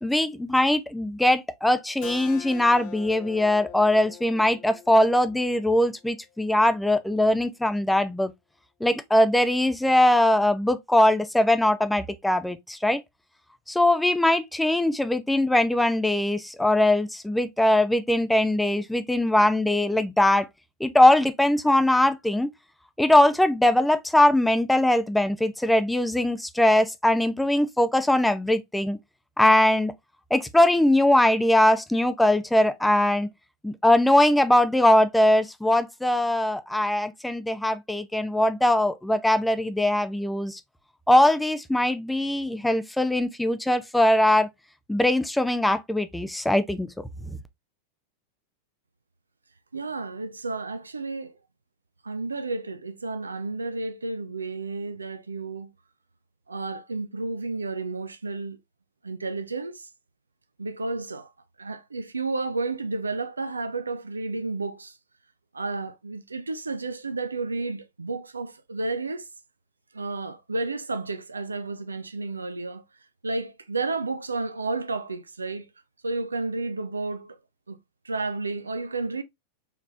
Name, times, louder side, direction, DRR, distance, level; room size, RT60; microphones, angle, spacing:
voice 1, 0.0-8.3 8.8-13.0 13.7-20.5 20.8-22.5 23.0-29.0 29.4-29.9 30.3-33.3 33.6-40.6 41.1-44.5 44.9-46.9 47.3-47.4, left 1 dB, 5° left, 0.5 m, -21 dB
Keyboard (musical), 2.0-7.2, left 10 dB, 45° left, 0.6 m, -45 dB
voice 2, 49.7-51.3 52.0-55.7 56.5-58.6 59.0-59.9 60.6-61.3 61.6-65.0 65.5-69.3 69.9-72.8 73.2-75.7 76.0-77.4 77.7-77.8 78.0-79.2, right 3 dB, 75° right, 0.5 m, -31 dB
4.8 x 3.4 x 2.5 m
figure-of-eight pair, 90°, 0 cm